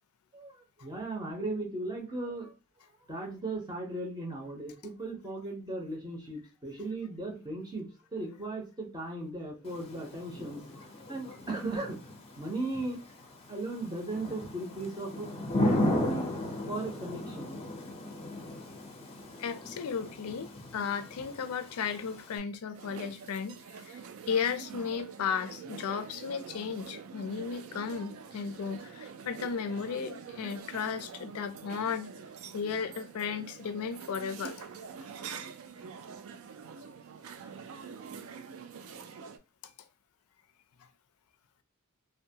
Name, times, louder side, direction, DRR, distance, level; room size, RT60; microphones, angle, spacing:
voice 1, 0.3-2.5 3.1-10.6 11.1-12.0 12.4-13.0 13.5-15.3 15.7-16.3 16.7-17.6, right 2 dB, 20° right, 0.6 m, -37 dB
Thunder / Rain, 9.6-22.4, left 1 dB, 25° left, 0.5 m, -36 dB
voice 2, 19.4-24.0 24.3-32.1 32.5-34.7, left 6 dB, 80° left, 0.4 m, -35 dB
sound 1, 22.7-39.4, right 6 dB, 70° right, 0.3 m, -45 dB
2.7 x 2.1 x 2.7 m
head